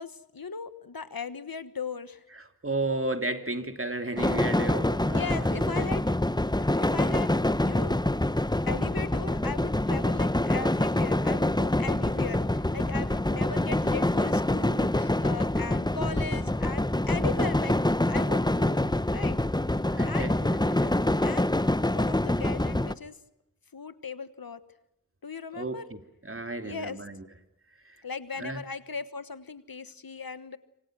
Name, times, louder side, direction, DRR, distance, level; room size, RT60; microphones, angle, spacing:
voice 1, 0.0-2.2 5.1-6.1 6.7-8.0 8.7-17.8 18.0-18.8 19.1-19.4 20.1-20.4 21.2-21.5 21.9-23.2 23.7-24.6 25.2-25.9 26.6-27.0 28.0-30.6, left 5 dB, 85° left, 13 dB, 1.4 m, -38 dB
voice 2, 2.4-6.0 11.3-11.4 19.9-21.1 25.5-27.2 27.9-28.0 28.4-28.6, right 2 dB, 40° right, 7 dB, 2.9 m, -34 dB
sound 1, 4.2-22.9, left 1 dB, 10° left, 0.9 m, -26 dB
27.0 x 26.0 x 6.2 m, 0.88 s
wide cardioid pair, 50°, 35 cm